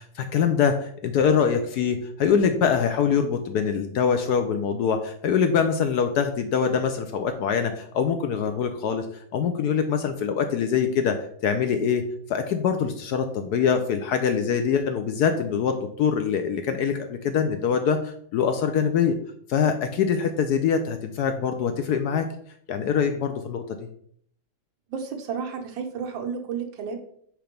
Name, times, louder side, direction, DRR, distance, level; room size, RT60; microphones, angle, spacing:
voice 1, 0.0-9.1 9.3-11.2 11.4-12.0 12.3-19.2 19.5-22.3 22.7-23.6, left 7 dB, 70° left, 7 dB, 1.0 m, -24 dB
voice 2, 24.9-27.0, right 6 dB, 80° right, 4 dB, 1.7 m, -32 dB
5.0 x 4.5 x 5.1 m, 0.65 s
omnidirectional pair, 2.1 m